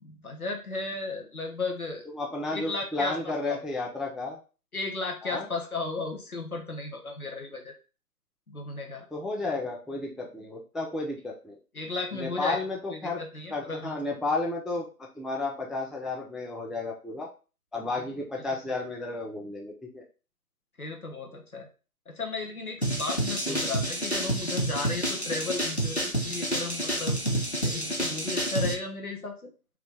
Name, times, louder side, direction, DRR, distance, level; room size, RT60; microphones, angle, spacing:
voice 1, 0.0-2.0 2.5-3.6 4.7-7.7 8.5-9.1 11.7-12.6 12.9-14.0 20.8-21.7 22.1-27.2 27.5-29.5, left 3 dB, 70° left, 2 dB, 1.1 m, -35 dB
voice 2, 2.1-4.4 5.2-5.5 9.1-11.6 12.1-13.2 13.5-17.3 17.7-20.0 23.5-23.6, left 3 dB, ahead, 0 dB, 0.4 m, -32 dB
sound 1, 22.8-28.7, right 1 dB, 45° left, 0.6 m, -29 dB
3.0 x 2.4 x 3.4 m, 0.34 s
figure-of-eight pair, 180°, 46 cm